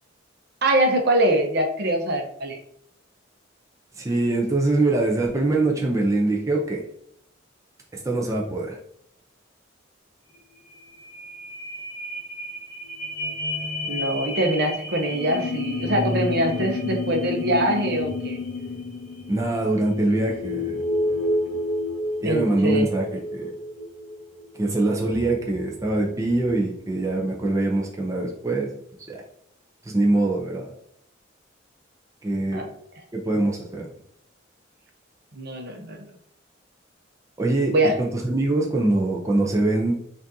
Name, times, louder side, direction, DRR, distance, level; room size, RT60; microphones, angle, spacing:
voice 1, 0.6-2.6 13.9-18.4 22.2-22.9 32.5-32.6 35.3-36.0 37.7-38.0, right 1 dB, 55° right, 3 dB, 0.8 m, -23 dB
voice 2, 4.0-6.8 8.0-8.8 19.3-21.3 22.2-23.5 24.6-28.7 29.1-29.2 29.9-30.7 32.2-32.7 33.1-33.9 37.4-39.9, right 2 dB, 15° right, -2 dB, 0.5 m, -23 dB
sound 1, 10.3-10.4 10.7-26.6 27.1-27.2, left 1 dB, 5° left, 1.3 m, -32 dB
sound 2, 15.1-21.0, left 5 dB, 65° left, 0.5 m, -32 dB
5.8 x 2.6 x 2.7 m, 0.70 s
head